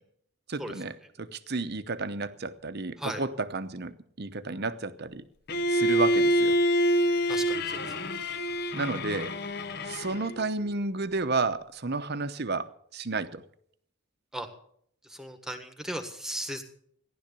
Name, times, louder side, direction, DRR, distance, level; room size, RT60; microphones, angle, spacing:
voice 1, 0.5-0.9 1.2-5.2 5.7-6.6 8.7-9.3 9.8-13.4, right 3 dB, 50° right, 0.8 m, -32 dB
Bowed string instrument, 5.5-10.4, equal, 50° left, 0.8 m, -26 dB
voice 2, 7.3-7.9 14.3-14.5 15.0-16.6, equal, ahead, 1.5 m, -37 dB
15.0 x 11.0 x 6.8 m
head